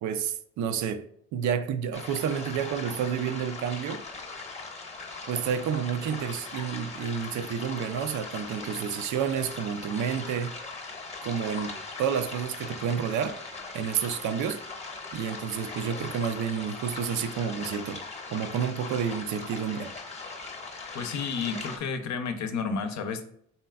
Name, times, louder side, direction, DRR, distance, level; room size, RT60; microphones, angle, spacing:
voice 1, 0.0-1.1 1.3-4.0 5.3-10.6 11.2-13.4 13.7-14.6 15.1-18.0 18.3-19.9, right 8 dB, 75° right, 0.5 m, -30 dB
sound 1, 1.9-21.8, left 3 dB, 20° left, 0.8 m, -40 dB
voice 2, 20.9-23.2, left 5 dB, 70° left, 0.7 m, -31 dB
4.2 x 3.2 x 2.2 m
cardioid pair, 90°, 30 cm